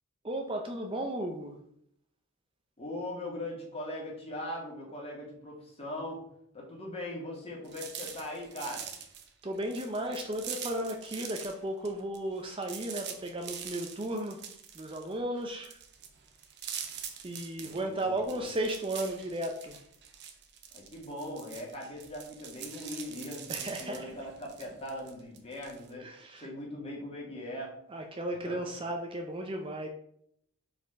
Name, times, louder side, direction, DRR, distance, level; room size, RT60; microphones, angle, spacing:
voice 1, 0.2-1.6 9.4-14.4 14.7-15.8 17.2-19.8 23.5-24.2 26.0-26.5 27.9-29.9, right 1 dB, 25° right, 3 dB, 0.5 m, -35 dB
voice 2, 2.8-6.2 6.5-8.9 17.6-18.4 20.7-26.1 26.4-27.8 28.4-28.6, left 1 dB, 25° left, -2 dB, 2.0 m, -40 dB
sound 1, 7.6-11.6 11.8-25.9, right 8 dB, 50° right, 0.8 m, -44 dB
5.2 x 4.2 x 5.1 m, 0.70 s
head